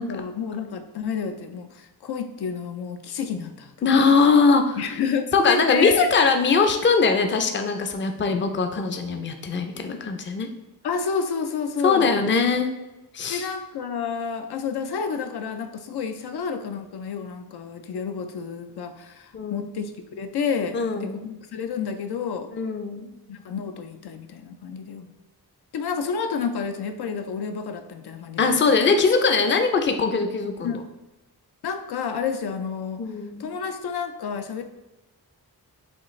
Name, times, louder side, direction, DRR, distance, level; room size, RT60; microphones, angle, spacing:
voice 1, 0.0-3.7 4.8-6.1 10.8-12.1 13.3-22.5 23.3-25.1 25.7-28.6 30.6-30.8 31.6-33.0 33.4-34.6, left 6 dB, 85° left, 7 dB, 0.5 m, -30 dB
voice 2, 3.8-4.8 5.3-10.5 11.8-12.7 13.1-13.4 19.3-19.7 20.7-21.2 22.5-23.1 28.4-30.8 33.0-33.5, left 4 dB, 30° left, 6 dB, 0.4 m, -21 dB
6.4 x 2.4 x 3.1 m, 1.0 s
wide cardioid pair, 115°, 38 cm